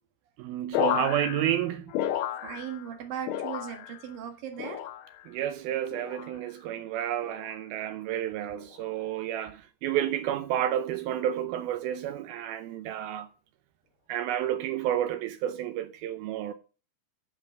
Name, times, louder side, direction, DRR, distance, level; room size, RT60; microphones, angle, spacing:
voice 1, 0.4-1.9 5.3-13.3 14.1-16.5, right 11 dB, 80° right, 2.2 m, -30 dB
sound 1, 0.7-3.0 3.2-4.1 4.6-5.3 5.9-6.4 7.2-7.6 8.6-8.9, left 11 dB, 75° left, 2.4 m, -33 dB
voice 2, 2.4-4.8, right 9 dB, 60° right, 3.0 m, -38 dB
11.5 x 6.5 x 6.0 m
omnidirectional pair, 5.1 m